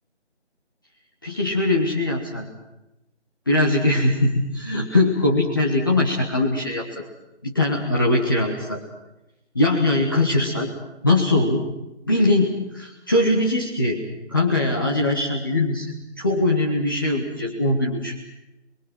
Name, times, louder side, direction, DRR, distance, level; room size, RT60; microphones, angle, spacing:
voice 1, 1.2-2.5 3.5-7.0 7.4-8.8 9.5-10.7 11.0-11.6 12.1-14.0 14.3-18.2, left 2 dB, 20° left, -2 dB, 1.4 m, -21 dB
29.0 x 22.5 x 6.1 m, 0.94 s
figure-of-eight pair, 165°, 35 cm